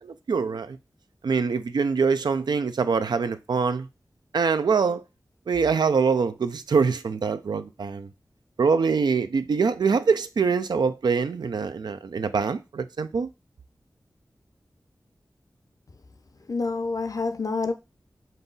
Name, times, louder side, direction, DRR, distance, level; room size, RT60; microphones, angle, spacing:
voice 1, 0.0-0.8 1.2-3.9 4.3-5.0 5.5-8.1 8.6-13.3, right 5 dB, 85° right, 0.4 m, -24 dB
voice 2, 16.5-17.7, left 3 dB, 55° left, 0.6 m, -27 dB
5.3 x 2.4 x 3.9 m
cardioid pair, 50°, 7 cm